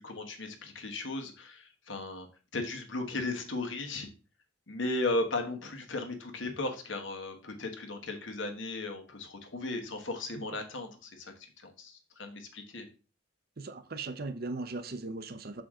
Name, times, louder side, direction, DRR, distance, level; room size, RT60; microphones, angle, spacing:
voice 1, 0.0-2.3 2.5-4.1 4.7-12.9, left 2 dB, 75° left, 1.3 m, -36 dB
voice 2, 13.6-15.6, right 3 dB, 50° right, 0.7 m, -38 dB
6.4 x 5.1 x 3.7 m
head